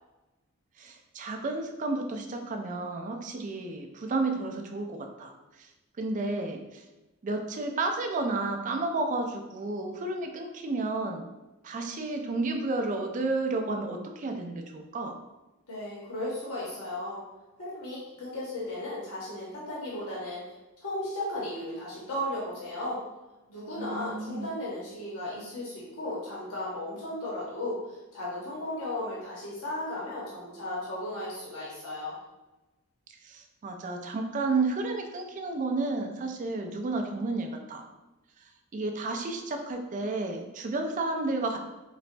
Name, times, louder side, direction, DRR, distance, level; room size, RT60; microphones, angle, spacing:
voice 1, 0.8-5.3 5.6-5.7 6.0-6.8 7.2-11.2 11.6-15.1 23.8-24.5 33.2-37.8 38.7-41.6, right 3 dB, 35° right, 4 dB, 0.3 m, -31 dB
voice 2, 15.7-17.2 17.6-20.5 20.8-23.0 23.5-32.2, left 1 dB, 70° left, -6 dB, 0.8 m, -35 dB
3.9 x 2.1 x 2.5 m, 1.1 s
head